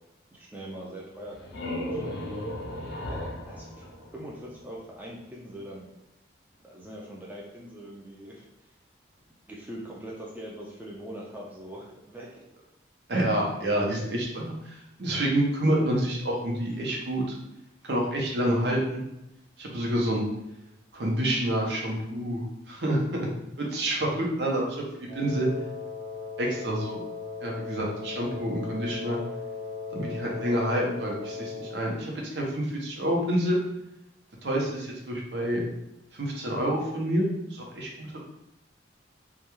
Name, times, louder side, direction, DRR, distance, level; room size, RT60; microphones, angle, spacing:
voice 1, 0.3-2.4 3.0-5.9 6.6-8.7 9.5-12.3, right 1 dB, 10° right, -4 dB, 0.3 m, -42 dB
sound 1, 1.1-4.8, left 1 dB, 60° left, 0.4 m, -36 dB
voice 2, 13.1-17.4 17.8-19.0 19.6-20.3 20.9-23.3 23.7-24.8 25.1-25.5 26.4-27.1 27.4-29.2 29.9-33.6 34.4-35.6 36.1-38.3, right 1 dB, 65° right, -2 dB, 0.6 m, -28 dB
Wind instrument woodwind instrument, 25.1-31.8, left 4 dB, 50° right, 1.1 m, -37 dB
2.2 x 2.2 x 3.0 m, 0.88 s
head